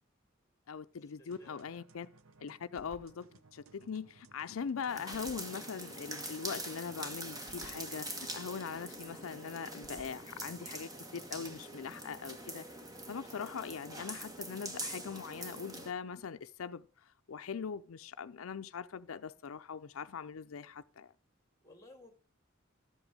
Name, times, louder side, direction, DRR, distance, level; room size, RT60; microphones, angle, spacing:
voice 1, 0.7-2.1 2.4-3.3 3.5-12.7 13.1-21.1, left 6 dB, 85° left, 0.5 m, -41 dB
voice 2, 1.2-1.9 21.6-22.1, left 2 dB, 15° left, 1.9 m, -58 dB
sound 1, 1.3-10.7, right 3 dB, 85° right, 0.8 m, -61 dB
sound 2, 4.9-15.9, right 1 dB, 20° right, 1.2 m, -44 dB
12.5 x 8.0 x 4.9 m
head